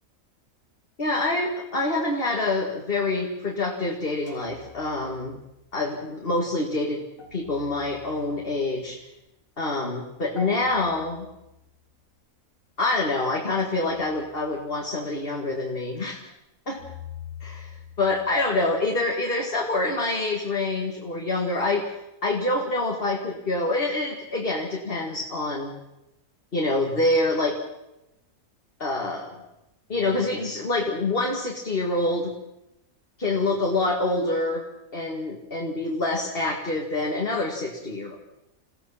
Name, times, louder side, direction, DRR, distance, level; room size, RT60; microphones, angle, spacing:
voice 1, 1.0-5.4 5.7-7.0 7.3-9.0 9.6-11.3 12.8-16.2 16.7-16.8 17.4-21.9 22.2-25.8 26.5-27.6 28.8-29.4 29.9-32.3 33.2-34.7 34.9-38.2, left 2 dB, 40° left, -1 dB, 2.4 m, -26 dB
sound 1, 4.3-5.2 7.2-8.7 10.4-11.7 13.6-14.7 16.7-18.8, left 5 dB, 70° left, 7.0 m, -45 dB
29.0 x 16.5 x 5.8 m, 0.90 s
omnidirectional pair, 1.5 m